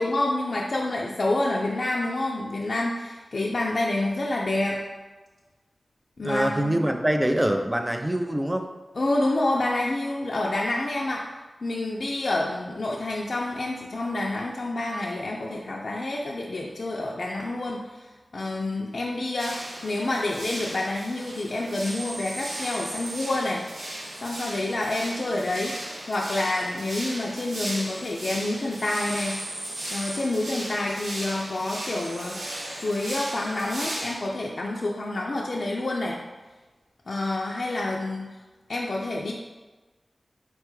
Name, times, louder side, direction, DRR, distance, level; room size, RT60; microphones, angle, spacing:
voice 1, 0.0-4.8 6.2-6.8 8.9-11.2 11.6-18.0 18.3-23.6 24.2-29.4 29.9-36.2 37.1-38.3 38.7-39.3, left 2 dB, 65° left, -3 dB, 0.4 m, -28 dB
voice 2, 6.2-8.6, right 1 dB, 15° right, 5 dB, 0.4 m, -24 dB
sound 1, 19.4-34.1, right 1 dB, 85° right, 0.8 m, -36 dB
4.4 x 2.2 x 4.6 m, 1.2 s
wide cardioid pair, 75°, 0 cm